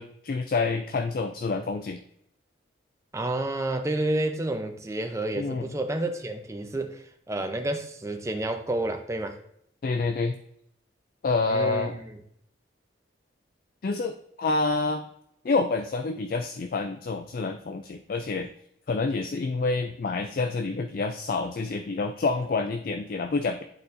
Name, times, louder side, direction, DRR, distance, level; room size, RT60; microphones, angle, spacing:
voice 1, 0.0-2.0 5.4-5.7 9.8-10.4 11.2-11.9 13.8-15.0 15.4-18.5 18.9-23.6, left 3 dB, 50° left, 7 dB, 0.3 m, -28 dB
voice 2, 3.1-9.4 11.5-12.2, right 1 dB, 15° right, 5 dB, 0.5 m, -30 dB
10.5 x 4.1 x 2.6 m, 0.72 s
head